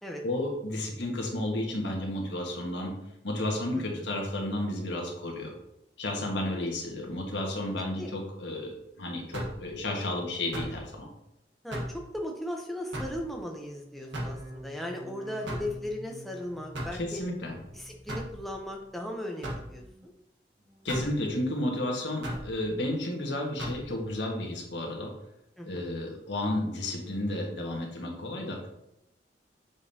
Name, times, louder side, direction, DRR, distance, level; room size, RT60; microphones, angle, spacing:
voice 1, 0.2-2.9 3.2-5.5 6.0-11.1 17.0-17.6 20.8-25.1 25.6-28.7, left 1 dB, 85° left, 0 dB, 1.5 m, -32 dB
voice 2, 3.7-4.1 8.0-8.1 11.6-17.2 17.7-20.1 25.6-25.9, left 1 dB, ahead, 0 dB, 0.7 m, -37 dB
sound 1, 9.3-9.6 10.5-10.8 11.7-12.0 12.9-13.2 14.1-14.4 15.5-15.7 16.7-17.0 18.1-18.3 19.4-19.7 20.9-21.1 22.2-22.5 23.6-23.8, equal, 85° right, 1.3 m, -35 dB
sound 2, 13.8-19.2 19.5-20.1 20.5-21.2 21.6-22.3 22.7-23.4 23.9-24.4 25.0-25.1, equal, 20° right, 1.2 m, -50 dB
7.1 x 5.2 x 2.8 m, 0.82 s
head